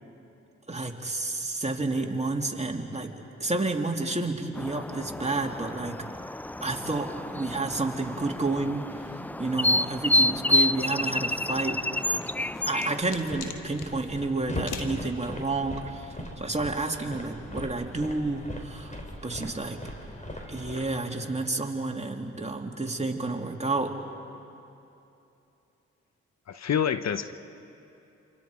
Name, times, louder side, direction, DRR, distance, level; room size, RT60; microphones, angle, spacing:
voice 1, 0.7-3.1 3.4-5.9 6.6-12.2 12.7-19.8 20.5-24.0, right 3 dB, 20° right, 2 dB, 2.7 m, -30 dB
sound 1, 4.5-13.0, left 1 dB, 5° left, 0.4 m, -29 dB
sound 2, 12.0-13.9 14.7-15.0, left 7 dB, 85° left, 1.4 m, -40 dB
sound 3, 13.0-21.0, left 1 dB, 25° left, 3.8 m, -39 dB
voice 2, 26.5-27.3, left 8 dB, 60° left, 11 dB, 0.8 m, -27 dB
28.0 x 26.0 x 5.0 m, 2.8 s
supercardioid pair, 40°, 30 cm